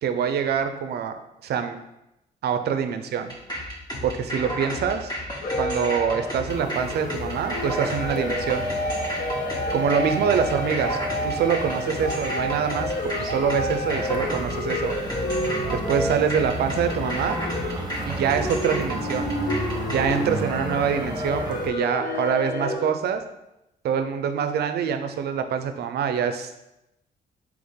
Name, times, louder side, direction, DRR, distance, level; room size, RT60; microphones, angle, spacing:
voice 1, 0.0-1.2 1.4-1.8 2.4-3.3 4.0-5.1 5.6-8.7 9.7-12.9 13.2-14.9 15.7-17.4 18.1-19.3 19.9-23.2 23.8-26.6, right 7 dB, 65° right, 8 dB, 0.5 m, -25 dB
sound 1, 3.3-20.1, equal, 20° left, 1.3 m, -33 dB
sound 2, 5.4-22.8, left 1 dB, 55° left, 0.9 m, -30 dB
sound 3, 6.5-21.7, right 2 dB, 25° right, 0.9 m, -35 dB
3.8 x 3.0 x 3.6 m, 0.89 s
supercardioid pair, 60°, 18 cm